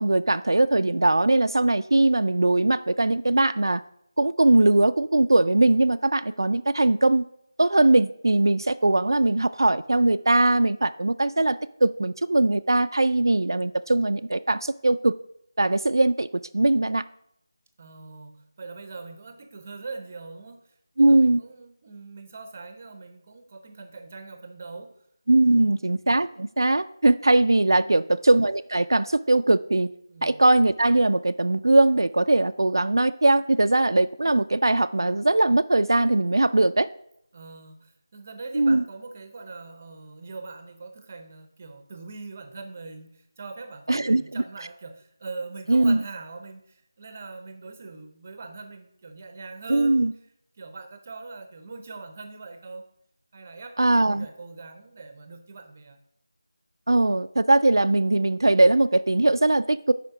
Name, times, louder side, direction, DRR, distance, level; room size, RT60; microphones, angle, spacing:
voice 1, 0.0-3.8 4.2-7.2 7.6-15.1 15.6-17.0 21.0-21.4 25.3-29.9 30.2-36.9 38.5-38.8 43.9-44.4 45.7-46.0 49.7-50.1 53.8-54.3 56.9-59.9, right 2 dB, 80° right, 11 dB, 0.3 m, -20 dB
voice 2, 17.8-25.0 25.5-25.8 27.8-28.1 30.1-30.4 37.3-50.0 50.6-52.9 53.3-56.0, right 3 dB, 25° right, 7 dB, 0.6 m, -42 dB
6.4 x 4.9 x 4.8 m, 0.73 s
figure-of-eight pair, 170°, 2 cm